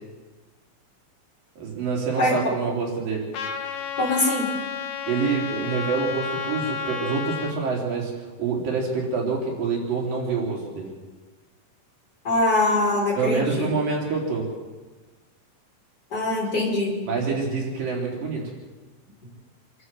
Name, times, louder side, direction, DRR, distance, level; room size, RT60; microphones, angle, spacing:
voice 1, 1.6-3.3 5.1-8.1 8.4-10.9 13.2-14.5 17.1-18.4, right 4 dB, 80° right, -2 dB, 5.6 m, -26 dB
Trumpet, 3.3-7.5, left 6 dB, 60° left, 2.6 m, -31 dB
voice 2, 4.0-4.5 12.2-13.7 16.1-17.0, left 2 dB, 30° left, -3 dB, 6.1 m, -22 dB
27.0 x 13.0 x 7.8 m, 1.3 s
omnidirectional pair, 3.9 m